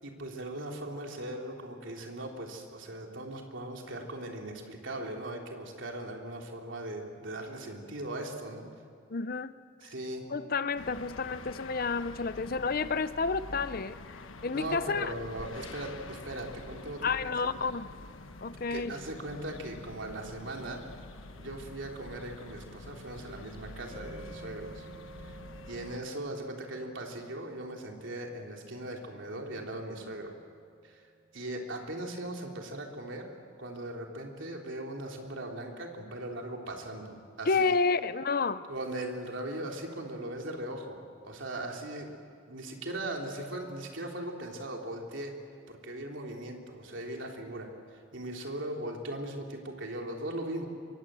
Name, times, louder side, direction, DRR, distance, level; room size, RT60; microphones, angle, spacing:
voice 1, 0.0-8.6 9.8-10.2 14.5-17.3 17.6-17.7 18.7-20.8 21.4-24.9 25.2-25.4 25.7-30.3 30.8-33.3 33.6-37.6 38.7-42.1 42.5-45.3 45.7-50.7, right 1 dB, 70° right, 1 dB, 3.4 m, -39 dB
voice 2, 9.1-9.5 10.3-14.0 14.4-15.1 17.0-17.9 18.4-18.9 37.5-38.6, left 4 dB, 45° left, 14 dB, 0.7 m, -30 dB
sound 1, 10.8-26.0, left 2 dB, 80° left, 1.3 m, -47 dB
sound 2, 23.9-32.3, right 3 dB, 35° right, 5.7 m, -53 dB
25.0 x 23.5 x 7.7 m, 2.3 s
head